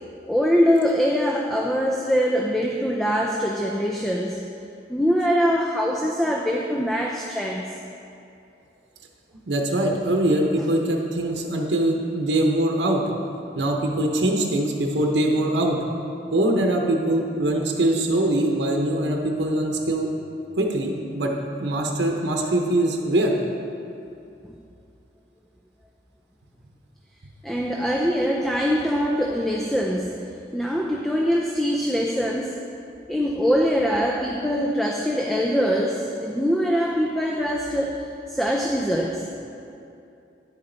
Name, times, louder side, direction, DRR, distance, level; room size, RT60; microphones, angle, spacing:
voice 1, 0.3-4.4 4.9-7.8 27.4-32.7 33.1-39.3, equal, ahead, 0 dB, 0.4 m, -23 dB
voice 2, 9.5-13.0 13.5-15.8 16.3-20.1 20.6-21.3 21.6-23.4, right 1 dB, 75° right, 1 dB, 0.8 m, -22 dB
9.8 x 7.4 x 3.9 m, 2.7 s
head